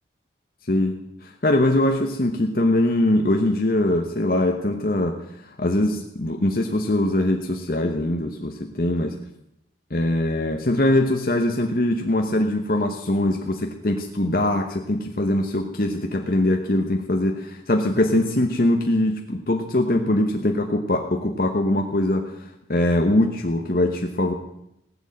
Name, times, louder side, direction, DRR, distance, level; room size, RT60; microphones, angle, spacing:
voice 1, 0.7-9.2 9.9-24.3, left 1 dB, 55° left, 3 dB, 1.1 m, -22 dB
18.5 x 8.3 x 7.8 m, 0.82 s
head